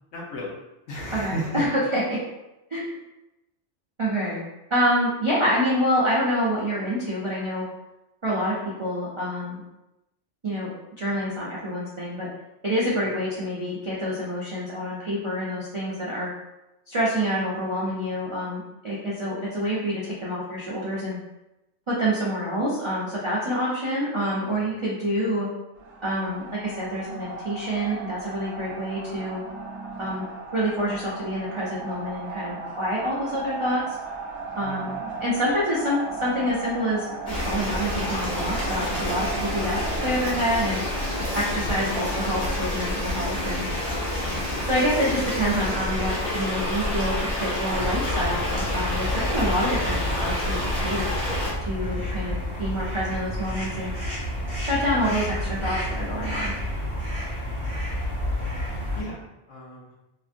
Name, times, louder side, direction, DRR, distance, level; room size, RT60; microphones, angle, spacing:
voice 1, 0.1-0.6 0.9-1.7 13.0-13.1 24.6-24.7 34.6-34.8 58.9-59.9, right 1 dB, 80° left, -3 dB, 1.1 m, -35 dB
voice 2, 1.1-2.2 2.7-2.9 4.0-4.4 4.7-7.7 8.2-9.6 10.4-10.7 11.0-12.3 12.6-16.3 16.9-21.2 21.9-25.5 26.0-29.4 30.0-30.3 30.5-34.0 34.6-35.0 35.2-40.8 41.3-43.7 44.6-51.0 51.6-53.9 54.6-56.5, equal, 55° right, -7 dB, 0.3 m, -27 dB
sound 1, 25.8-43.5, right 4 dB, 70° right, 0.8 m, -37 dB
sound 2, 37.3-51.5, left 1 dB, 45° left, 0.9 m, -28 dB
sound 3, 47.7-59.0, equal, 5° right, 1.1 m, -30 dB
2.9 x 2.5 x 2.5 m, 0.95 s
omnidirectional pair, 1.2 m